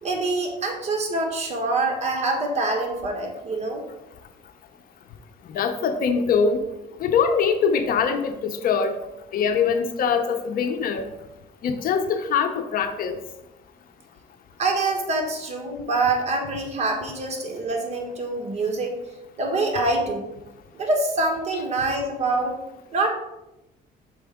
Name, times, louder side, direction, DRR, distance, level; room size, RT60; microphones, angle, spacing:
voice 1, 0.0-3.8 14.6-18.9 19.4-20.3 20.8-22.6 22.9-23.1, right 2 dB, 40° right, 2 dB, 1.4 m, -25 dB
voice 2, 5.5-6.6 7.0-8.9 9.3-11.1 11.6-13.2, left 6 dB, 60° left, 8 dB, 0.7 m, -23 dB
6.1 x 4.7 x 3.5 m, 0.94 s
cardioid pair, 110°, 17 cm